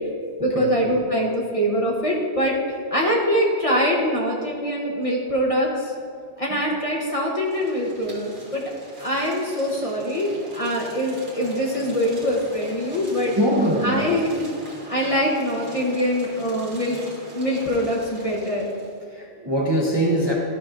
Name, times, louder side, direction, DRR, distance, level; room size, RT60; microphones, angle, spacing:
voice 1, 0.4-2.5 2.9-5.9 6.4-8.6 9.0-13.3 13.8-14.5 14.9-17.0 17.3-18.7, equal, 35° left, -2 dB, 0.9 m, -23 dB
sound 1, 7.4-19.0, right 1 dB, 50° right, 1.5 m, -42 dB
voice 2, 13.4-14.0 19.1-20.3, right 1 dB, 25° right, -3 dB, 0.8 m, -22 dB
12.0 x 5.8 x 2.5 m, 2.3 s
omnidirectional pair, 1.1 m